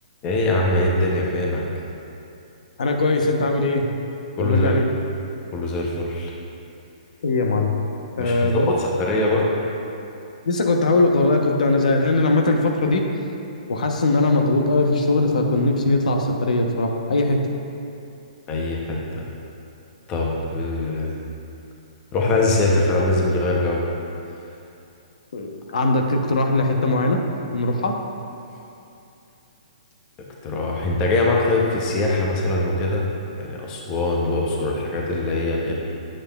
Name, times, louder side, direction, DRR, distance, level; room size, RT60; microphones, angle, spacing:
voice 1, 0.2-1.6 4.4-4.8 5.5-6.3 8.2-9.5 18.5-19.2 20.1-21.1 22.1-23.8 30.4-33.0 33.3-35.7, left 2 dB, 15° left, -2 dB, 0.5 m, -22 dB
voice 2, 2.8-3.8 4.4-4.9 7.2-7.7 8.2-8.7 10.5-13.0 13.7-17.4 25.3-27.2 27.5-27.9, left 2 dB, 75° left, 3 dB, 0.8 m, -20 dB
8.6 x 7.5 x 2.2 m, 2.7 s
hypercardioid pair, 175°, 4 cm